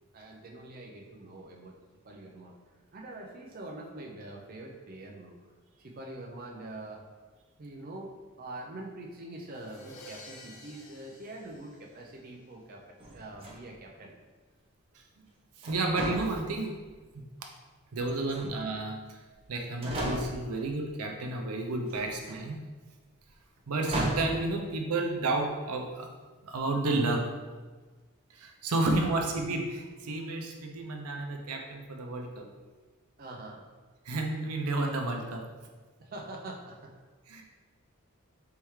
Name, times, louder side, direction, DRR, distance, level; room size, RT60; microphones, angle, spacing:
voice 1, 0.1-1.8 2.0-2.5 2.9-5.4 5.8-7.1 7.6-14.1 18.2-18.5 29.0-29.2 33.2-33.6 36.0-37.0, right 2 dB, 40° right, 0 dB, 0.4 m, -44 dB
sound 1, 9.5-12.4, left 1 dB, 70° left, 0.8 m, -51 dB
sound 2, 13.0-13.9 15.6-16.9 18.0-18.7 19.4-19.5 19.8-20.6 21.9-22.4 23.8-24.5, right 1 dB, 25° right, 0.8 m, -36 dB
voice 2, 15.6-16.7 17.9-19.2 19.5-22.6 23.7-26.1 26.4-27.2 28.3-32.5 34.1-35.4 37.3-37.4, right 2 dB, 90° right, 2 dB, 0.6 m, -31 dB
4.3 x 3.5 x 3.1 m, 1.3 s
head